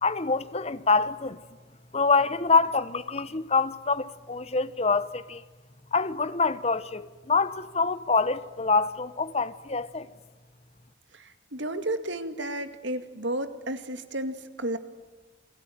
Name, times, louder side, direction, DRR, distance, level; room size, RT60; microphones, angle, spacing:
voice 1, 0.0-1.4 1.9-5.4 5.9-10.1, left 4 dB, 35° left, 1.0 m, -25 dB
voice 2, 11.1-14.8, right 1 dB, 75° right, 2.2 m, -32 dB
29.0 x 21.5 x 9.4 m
head